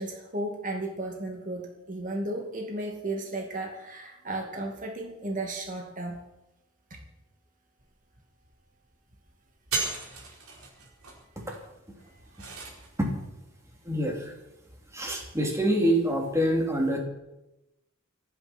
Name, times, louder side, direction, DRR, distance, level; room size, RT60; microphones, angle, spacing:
voice 1, 0.0-6.2 6.9-7.0, right 2 dB, 40° right, 1 dB, 2.5 m, -34 dB
sound 1, 7.8-7.9 8.1-8.6 8.9-9.2 9.5-13.0, right 3 dB, 85° right, 4.7 m, -36 dB
voice 2, 13.8-14.3 14.9-17.0, right 1 dB, 15° right, 0 dB, 3.1 m, -25 dB
28.5 x 10.0 x 4.5 m, 0.93 s
head